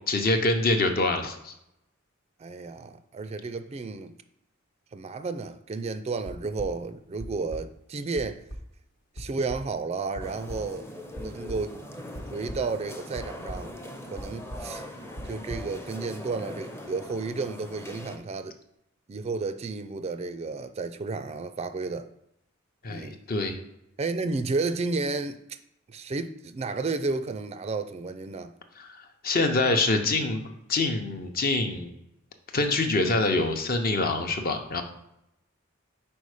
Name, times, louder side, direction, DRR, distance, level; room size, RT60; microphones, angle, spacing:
voice 1, 0.1-1.5 22.8-23.6 28.8-29.0 29.2-31.9 32.5-34.8, left 2 dB, 45° left, 0.8 m, -25 dB
voice 2, 2.4-4.1 4.9-8.4 9.2-10.9 11.2-11.7 12.3-13.7 14.1-14.9 15.3-18.6 19.1-22.1 22.9-23.2 24.0-25.6 25.9-28.5, right 3 dB, 30° right, 0.4 m, -32 dB
sound 1, 6.2-6.7 7.2-7.6 8.2-8.3 8.5-8.6 9.2-9.3 9.5-9.6 10.2-10.6 11.2-11.6 12.2-12.7 13.2-13.6 14.2-14.3 14.5-14.7 15.2-15.6, equal, 70° left, 1.1 m, -37 dB
sound 2, 10.2-18.2, left 1 dB, 10° left, 0.6 m, -41 dB
5.4 x 4.4 x 4.9 m
head